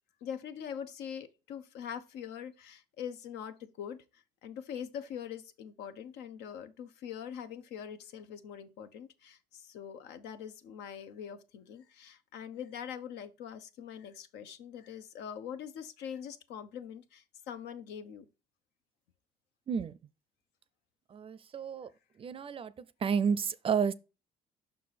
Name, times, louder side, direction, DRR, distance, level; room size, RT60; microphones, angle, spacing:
voice 1, 0.2-18.3, left 8 dB, 85° left, 0.9 m, -43 dB
voice 2, 19.7-20.0 21.1-21.9 22.2-22.7 23.0-23.9, right 6 dB, 35° right, 0.5 m, -31 dB
5.9 x 4.7 x 4.1 m
cardioid pair, 110°, 17 cm